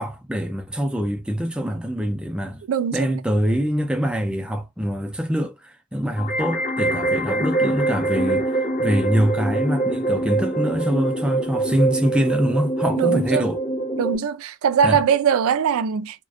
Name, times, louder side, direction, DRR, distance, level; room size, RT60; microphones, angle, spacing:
voice 1, 0.0-2.6 2.9-13.6 14.8-15.0, equal, 5° right, 0.4 m, -24 dB
voice 2, 2.7-3.2 13.0-13.5 14.0-16.2, right 7 dB, 90° right, 0.4 m, -21 dB
sound 1, 6.2-14.2, right 2 dB, 35° left, 0.6 m, -24 dB
2.4 x 2.1 x 2.3 m
head